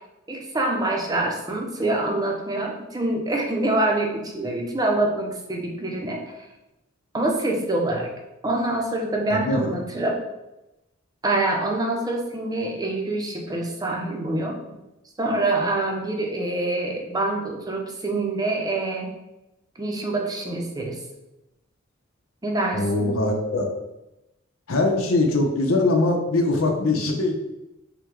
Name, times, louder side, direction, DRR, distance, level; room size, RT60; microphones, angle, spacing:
voice 1, 0.3-6.5 7.1-8.1 8.4-10.2 11.2-14.6 15.2-19.1 19.8-21.0 22.4-23.1, right 2 dB, 20° right, 0 dB, 0.6 m, -25 dB
voice 2, 9.3-9.6 22.7-23.7 24.7-27.3, left 2 dB, 85° left, 3 dB, 0.8 m, -22 dB
5.8 x 2.2 x 3.7 m, 0.97 s
head